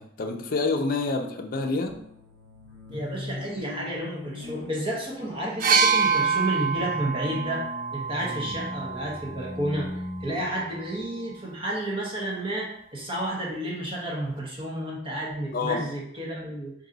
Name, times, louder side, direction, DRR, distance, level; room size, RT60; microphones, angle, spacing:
voice 1, 0.0-1.9 15.5-15.8, left 3 dB, 50° left, 4 dB, 0.5 m, -27 dB
sound 1, 1.9-11.8, left 1 dB, 65° right, 1.3 m, -40 dB
voice 2, 2.9-7.6 7.9-16.7, right 1 dB, 30° right, -3 dB, 0.9 m, -31 dB
sound 2, 5.6-9.4 10.5-10.6, right 6 dB, 50° right, 0.4 m, -26 dB
3.8 x 2.7 x 3.9 m, 0.74 s
head